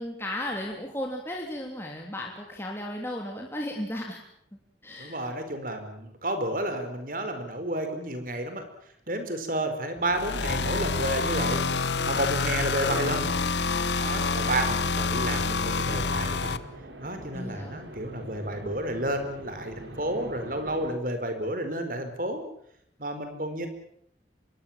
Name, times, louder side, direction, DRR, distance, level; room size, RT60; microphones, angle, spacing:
voice 1, 0.0-4.2 4.8-5.3 17.3-17.8, left 1 dB, 15° left, 0 dB, 3.2 m, -35 dB
voice 2, 5.0-8.6 9.1-11.6 12.0-13.4 14.0-16.6 17.0-22.4 23.0-23.7, right 1 dB, 50° right, 8 dB, 4.8 m, -31 dB
sound 1, 9.9-20.9, right 1 dB, 90° right, 5.3 m, -45 dB
sound 2, 10.1-16.6, left 4 dB, 80° left, 1.1 m, -27 dB
25.5 x 22.0 x 7.5 m, 0.70 s
head